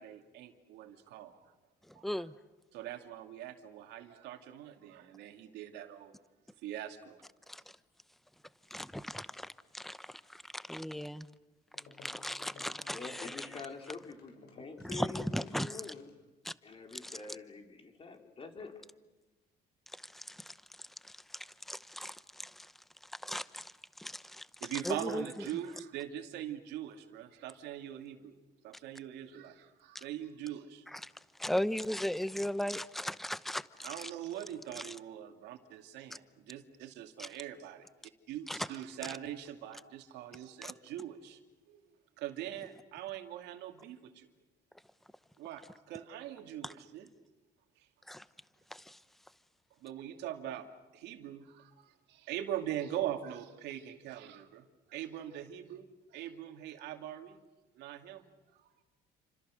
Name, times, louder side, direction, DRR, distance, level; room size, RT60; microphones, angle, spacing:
voice 1, 0.0-1.4 1.9-2.2 2.7-6.2 6.6-7.2 24.6-28.3 28.6-30.8 33.8-37.9 38.3-41.4 41.7-41.8 42.2-44.3 45.4-47.1 49.8-50.7 50.9-57.4 57.7-58.3, right 11 dB, 85° right, 6 dB, 2.7 m, -42 dB
voice 2, 2.0-2.3 7.5-7.6 8.7-11.3 12.0-13.5 14.8-15.8 16.4-16.5 17.0-17.2 20.0-20.5 21.0-22.7 23.2-24.5 24.8-25.2 29.9-30.0 30.9-31.1 31.4-34.1 34.8-34.9 37.2-37.3 38.5-38.7 40.6-40.7 46.6-46.7 48.1-48.2 48.7-49.0, equal, ahead, 15 dB, 0.9 m, -37 dB
sound 1, 11.7-16.3, left 4 dB, 70° left, 6.5 m, -58 dB
voice 3, 12.9-16.1 16.6-18.7, left 4 dB, 35° left, 4 dB, 4.1 m, -46 dB
29.0 x 26.0 x 6.5 m, 1.1 s
cardioid pair, 110°, 17 cm